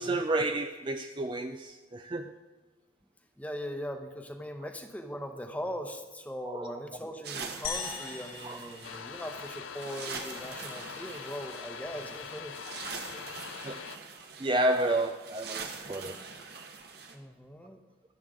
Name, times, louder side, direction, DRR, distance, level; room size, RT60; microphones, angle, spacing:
voice 1, 0.0-2.3 6.5-6.7 8.4-8.6 13.1-13.2 13.6-13.8 14.4-16.2, right 1 dB, 25° right, 0.4 m, -30 dB
voice 2, 3.4-12.5 17.1-17.8, equal, 10° left, 0.9 m, -40 dB
sound 1, 7.2-17.2, right 5 dB, 55° right, 1.3 m, -44 dB
sound 2, 7.6-10.1, left 6 dB, 55° left, 1.9 m, -40 dB
sound 3, 8.8-14.0, left 7 dB, 85° left, 0.5 m, -43 dB
23.5 x 8.0 x 3.7 m
head